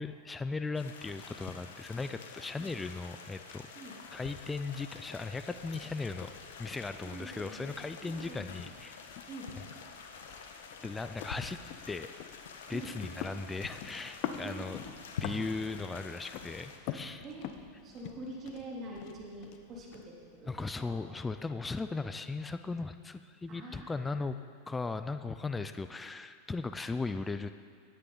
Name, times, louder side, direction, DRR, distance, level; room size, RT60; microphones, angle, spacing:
voice 1, 0.0-3.7 4.1-6.3 6.6-9.0 10.8-11.6 11.9-12.1 12.7-14.8 15.2-17.2 20.5-24.4 24.7-27.5, left 3 dB, 15° left, 10 dB, 0.5 m, -37 dB
sound 1, 0.7-16.8, left 5 dB, 75° left, 1.2 m, -47 dB
sound 2, 4.0-21.0, left 9 dB, 55° left, 0.9 m, -47 dB
voice 2, 7.0-7.6 8.0-8.5 9.3-9.5 12.7-12.9 14.4-14.6 17.2-17.5 17.8-20.1 20.4-21.0 23.5-24.2, right 1 dB, 35° right, -4 dB, 3.3 m, -45 dB
16.5 x 9.8 x 3.9 m, 2.1 s
hypercardioid pair, 105°, 0 cm